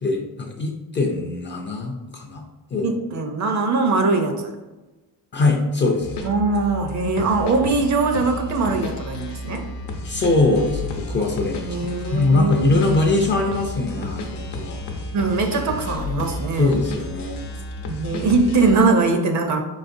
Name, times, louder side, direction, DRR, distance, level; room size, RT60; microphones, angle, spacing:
voice 1, 0.0-2.4 2.7-2.9 5.3-6.2 10.0-14.8 16.6-17.4, left 2 dB, 30° left, 1 dB, 0.4 m, -22 dB
voice 2, 2.8-4.5 6.2-9.6 11.6-12.7 15.1-16.8 17.9-19.6, right 3 dB, 45° right, 5 dB, 0.5 m, -21 dB
sound 1, 6.0-18.8, left 2 dB, 80° left, 0.8 m, -32 dB
5.1 x 4.0 x 2.5 m, 1.1 s
cardioid pair, 180°, 42 cm